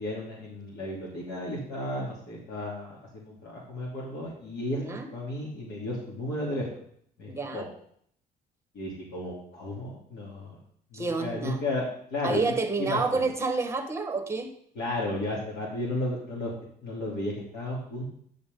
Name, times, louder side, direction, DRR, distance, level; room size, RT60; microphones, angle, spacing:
voice 1, 0.0-4.8 5.1-6.7 7.2-7.7 8.7-10.6 10.9-11.9 12.1-12.4 12.8-13.2 14.8-16.5 16.8-18.0, left 1 dB, 70° left, -5 dB, 3.0 m, -33 dB
voice 2, 4.8-5.1 7.3-7.7 10.9-11.6 12.2-14.5, right 3 dB, 15° right, 6 dB, 1.4 m, -29 dB
10.0 x 6.1 x 5.4 m, 0.65 s
cardioid pair, 110°, 17 cm